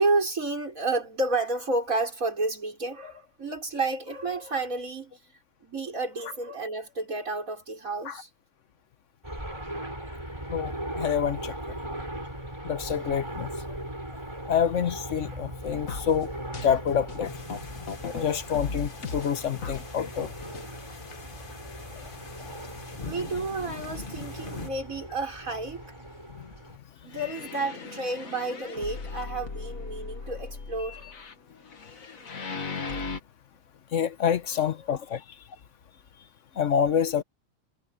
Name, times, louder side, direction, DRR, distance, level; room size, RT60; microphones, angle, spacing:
voice 1, 0.0-5.2 5.6-8.3 9.4-9.9 13.7-13.8 21.9-22.1 23.0-25.9 27.0-31.2 34.5-34.9, right 2 dB, 90° right, 6.2 m, -31 dB
sound 1, 9.2-26.8, right 1 dB, 20° right, 7.8 m, -39 dB
voice 2, 10.5-11.8 12.6-13.5 14.5-16.3 16.6-17.3 18.2-20.3 33.9-35.2 36.6-37.2, left 8 dB, 65° left, 1.3 m, -27 dB
sound 2, 15.9-18.2 18.5-19.9 20.2-20.7 21.2-21.3 22.0-22.1 22.6-22.7 27.1-33.2, left 4 dB, 85° left, 2.3 m, -37 dB
sound 3, 17.2-24.7, left 4 dB, 40° left, 1.7 m, -43 dB
omnidirectional pair, 1.4 m